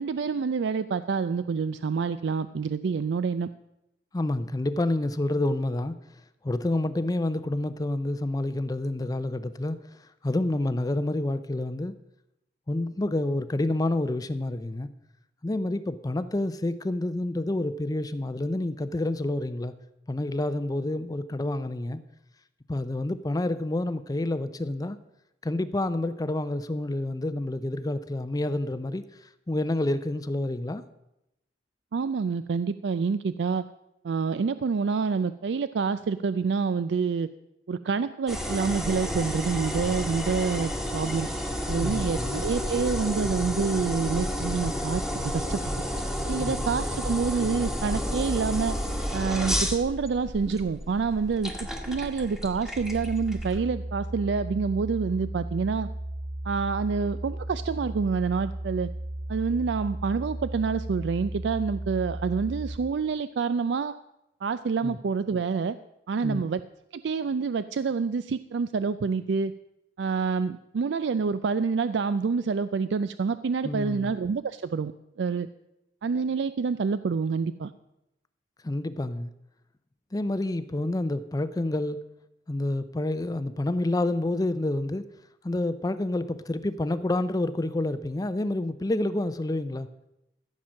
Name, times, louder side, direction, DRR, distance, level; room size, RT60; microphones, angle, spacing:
voice 1, 0.0-3.5 31.9-33.6 34.0-37.3 37.7-41.3 41.7-45.6 46.3-48.8 49.1-55.9 56.4-58.9 59.3-64.0 64.4-65.8 66.1-66.6 66.9-69.5 70.0-74.9 75.2-75.5 76.0-77.7, right 5 dB, 75° right, 13 dB, 0.4 m, -27 dB
voice 2, 4.1-6.0 6.4-11.9 12.7-14.9 15.4-19.7 20.1-22.0 22.7-25.0 25.4-30.8 41.8-42.5 46.4-46.7 64.8-65.0 66.2-66.4 73.6-74.1 78.6-79.3 80.1-82.0 82.5-85.1 85.4-89.9, left 1 dB, 20° left, 12 dB, 0.5 m, -28 dB
sound 1, 38.3-53.6, equal, ahead, 1.3 m, -31 dB
sound 2, 52.8-62.8, right 1 dB, 25° right, 1.1 m, -35 dB
14.5 x 7.4 x 6.3 m, 0.87 s
head